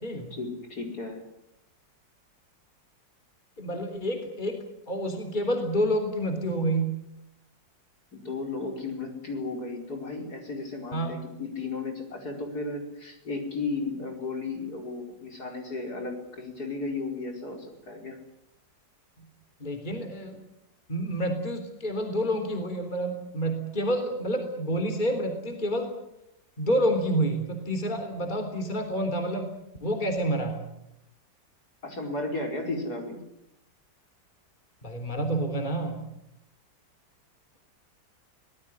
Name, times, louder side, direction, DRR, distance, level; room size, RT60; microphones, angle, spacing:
voice 1, 0.3-1.2 8.1-18.2 31.8-33.2, left 3 dB, 55° left, 3 dB, 5.4 m, -34 dB
voice 2, 3.6-7.0 10.9-11.1 19.2-19.3 19.6-20.4 20.9-25.9 26.6-30.6 34.8-36.0, right 1 dB, 25° left, 5 dB, 3.6 m, -28 dB
24.5 x 19.0 x 9.9 m, 0.83 s
omnidirectional pair, 2.0 m